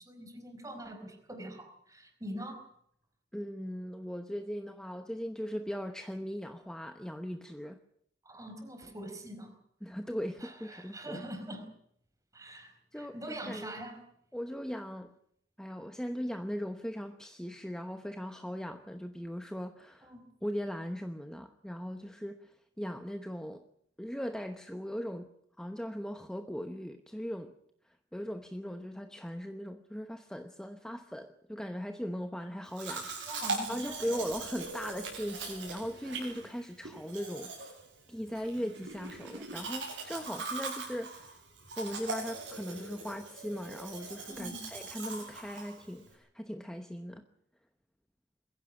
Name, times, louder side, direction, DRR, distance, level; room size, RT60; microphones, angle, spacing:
voice 1, 0.0-2.7 8.2-9.5 10.4-11.7 12.3-14.0 20.0-20.2 33.3-34.2 44.3-44.6, right 1 dB, 20° right, 4.7 m, -43 dB
voice 2, 3.3-7.8 9.8-11.2 12.9-13.8 14.3-15.1 15.6-20.1 20.4-23.7 24.0-25.3 25.6-27.5 27.8-33.4 33.7-37.7 38.1-41.4 41.8-47.2, equal, 5° left, 1.0 m, -39 dB
Domestic sounds home sounds, 32.7-46.1, right 3 dB, 75° right, 7.7 m, -41 dB
22.5 x 15.5 x 9.9 m
head